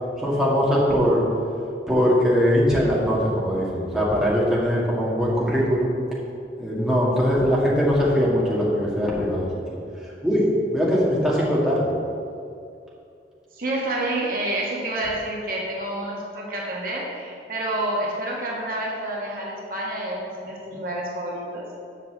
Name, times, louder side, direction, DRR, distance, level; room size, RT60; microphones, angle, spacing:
voice 1, 0.2-1.2 1.9-5.9 6.6-9.5 10.2-11.9, equal, 5° right, -7 dB, 1.9 m, -21 dB
voice 2, 13.5-21.7, right 1 dB, 55° right, -3 dB, 1.6 m, -28 dB
7.4 x 5.8 x 7.6 m, 2.5 s
head